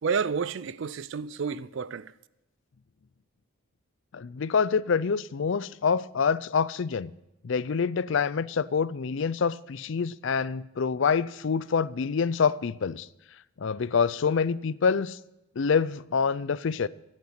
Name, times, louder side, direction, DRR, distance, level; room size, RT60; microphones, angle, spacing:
voice 1, 0.0-2.1, right 6 dB, 60° right, 0.4 m, -30 dB
voice 2, 4.1-7.1 7.4-13.1 13.6-15.2 15.6-16.9, left 5 dB, 60° left, 0.4 m, -26 dB
14.5 x 8.5 x 6.5 m
head